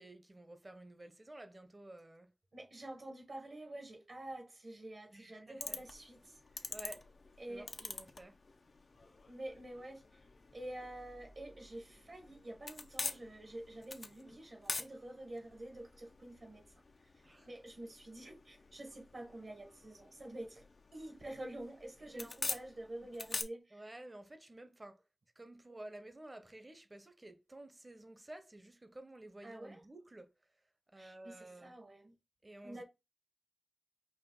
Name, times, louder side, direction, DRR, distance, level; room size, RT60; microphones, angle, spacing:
voice 1, 0.0-2.3 5.1-5.8 6.7-7.0 7.5-8.4 17.2-17.5 22.1-22.4 23.7-25.0 25.4-30.3 30.9-31.7 32.4-32.8, right 1 dB, 35° right, 0.9 m, -52 dB
voice 2, 2.5-6.7 7.4-7.7 9.3-10.2 10.5-16.6 17.1-20.7 20.9-23.8 29.4-29.8 31.0-32.1 32.6-32.8, right 1 dB, 65° right, 1.5 m, -48 dB
sound 1, 5.6-23.4, left 3 dB, 65° left, 0.7 m, -47 dB
5.0 x 2.4 x 3.9 m
cardioid pair, 45°, 0 cm